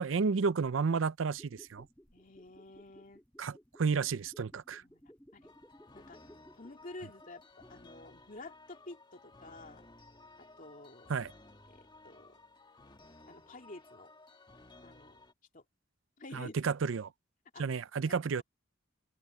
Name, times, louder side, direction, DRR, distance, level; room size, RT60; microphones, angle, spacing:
voice 1, 0.0-1.9 3.4-4.8 11.1-11.3 16.3-17.1 17.6-18.4, right 5 dB, 80° right, 0.5 m, -31 dB
sound 1, 1.3-8.1 8.4-8.5, equal, 10° left, 4.3 m, -59 dB
voice 2, 2.1-3.2 4.7-5.5 5.9-6.2 6.6-7.4 7.7-9.9 10.6-11.1 11.7-12.4 13.3-14.1 14.8-15.2 15.5-15.6 16.2-16.7 17.5-17.6 18.1-18.4, left 2 dB, 45° left, 2.9 m, -50 dB
sound 2, 5.4-15.3, left 2 dB, 25° left, 2.1 m, -57 dB
open air
head